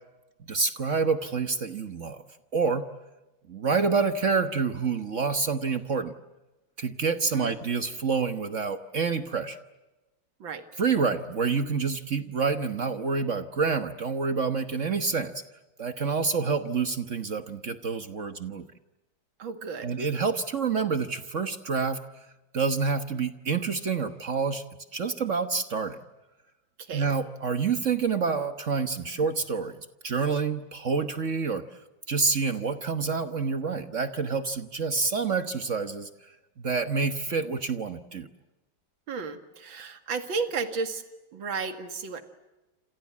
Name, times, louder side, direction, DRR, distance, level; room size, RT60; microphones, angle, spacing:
voice 1, 0.5-2.2 2.5-2.8 3.5-6.1 6.8-9.6 10.8-15.3 15.8-18.6 19.8-22.0 22.5-24.6 24.9-26.0 26.9-29.8 30.0-31.6 32.1-36.1 36.6-38.3, right 5 dB, 45° right, 9 dB, 1.3 m, -27 dB
voice 2, 19.4-19.9 26.8-27.1 39.1-41.0 41.3-42.2, right 4 dB, 75° right, 8 dB, 2.7 m, -33 dB
28.5 x 28.0 x 7.4 m, 1.1 s
omnidirectional pair, 2.1 m